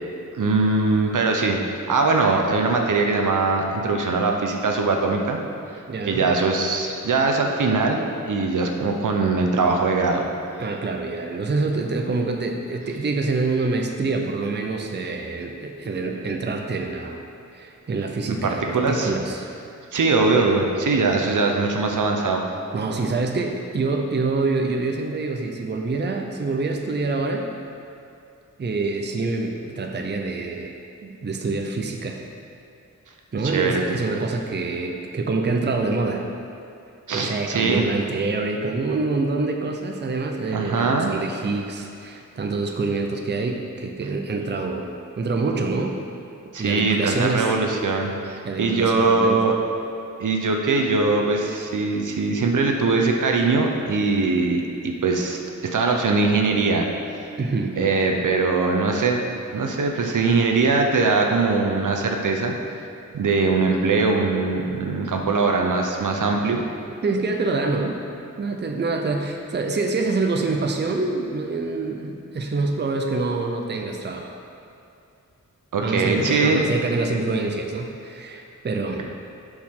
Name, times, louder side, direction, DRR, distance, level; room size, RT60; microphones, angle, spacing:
voice 1, 0.3-1.6 1.9-5.4 6.1-10.3 18.3-19.1 19.9-22.4 33.4-34.0 37.1-37.9 40.5-41.1 46.5-49.5 50.2-56.9 57.8-59.2 59.5-62.5 63.1-66.6 75.7-76.6, right 3 dB, 75° right, 2 dB, 0.8 m, -21 dB
voice 2, 5.9-6.3 10.6-17.2 17.5-19.5 22.7-27.5 28.6-32.2 33.3-36.2 37.1-44.9 45.2-46.0 46.6-47.5 48.4-49.4 57.4-57.7 67.0-68.0 68.4-74.3 75.8-79.0, right 3 dB, 35° right, 3 dB, 0.6 m, -26 dB
11.5 x 4.8 x 3.7 m, 2.6 s
wide cardioid pair, 125°, 31 cm